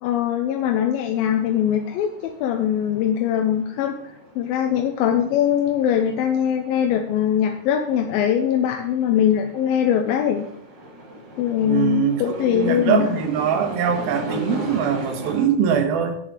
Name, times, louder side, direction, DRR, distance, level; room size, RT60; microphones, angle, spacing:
voice 1, 0.0-4.0 4.4-10.5 11.4-13.2, left 9 dB, 80° left, 4 dB, 2.4 m, -21 dB
sound 1, 1.1-15.5, equal, 40° right, 2.0 m, -38 dB
voice 2, 11.6-16.2, right 8 dB, 75° right, 6 dB, 3.1 m, -22 dB
10.0 x 6.9 x 6.6 m, 0.75 s
omnidirectional pair, 4.4 m